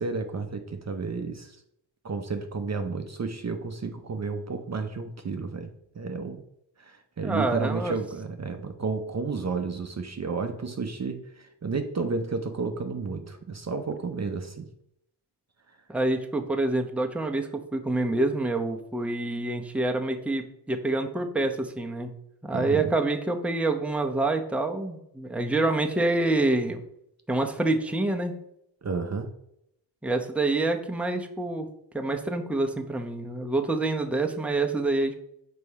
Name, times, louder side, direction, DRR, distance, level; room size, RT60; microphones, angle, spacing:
voice 1, 0.0-1.6 2.0-6.4 6.8-14.7 15.7-15.8 22.5-22.9 28.8-29.3, right 4 dB, 35° right, 6 dB, 0.7 m, -32 dB
voice 2, 7.2-7.9 15.9-22.2 22.4-26.8 27.3-28.3 30.0-31.7 31.9-35.1, right 2 dB, 5° right, 3 dB, 0.7 m, -27 dB
5.2 x 4.3 x 4.7 m, 0.77 s
cardioid pair, 65°, 46 cm